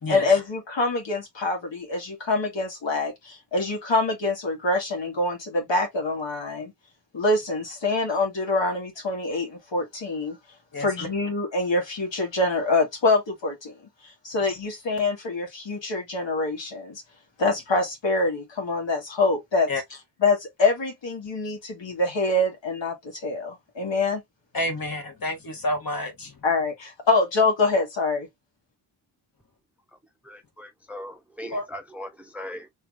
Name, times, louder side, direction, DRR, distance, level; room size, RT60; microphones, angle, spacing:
voice 1, 0.1-6.7 7.1-10.4 10.8-13.7 14.0-17.0 17.4-19.7 20.2-24.2 26.4-28.3, left 3 dB, 60° left, 1.8 m, -25 dB
voice 2, 24.5-26.3 31.5-31.6, left 1 dB, 45° left, 1.7 m, -29 dB
voice 3, 30.2-32.7, left 1 dB, 5° right, 0.7 m, -39 dB
3.2 x 3.0 x 2.5 m
supercardioid pair, 40°, 49 cm